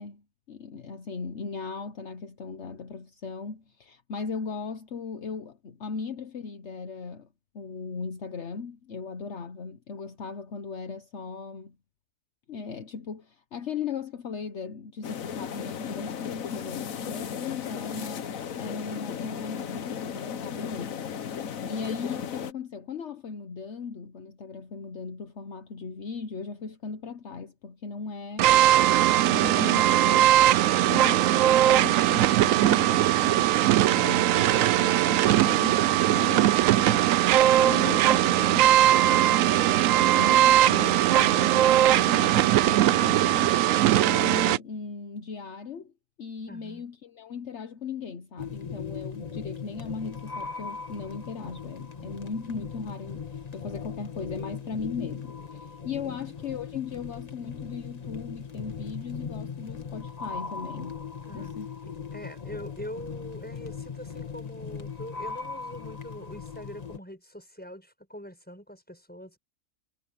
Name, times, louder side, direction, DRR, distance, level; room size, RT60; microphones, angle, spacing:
voice 1, 0.0-7.3 7.5-11.8 12.5-18.3 18.6-28.6 29.2-30.4 30.9-43.6 44.0-45.9 46.2-61.0 61.3-61.7, left 5 dB, 60° left, 1.3 m, -38 dB
sound 1, 15.0-22.5, left 7 dB, 90° left, 1.5 m, -35 dB
sound 2, 28.4-44.6, right 13 dB, 85° right, 1.0 m, -20 dB
voice 2, 46.5-46.8 56.0-56.3 61.2-61.5 62.1-69.4, equal, 5° left, 6.4 m, -43 dB
sound 3, 48.4-67.0, left 6 dB, 30° left, 1.5 m, -39 dB
omnidirectional pair, 1.4 m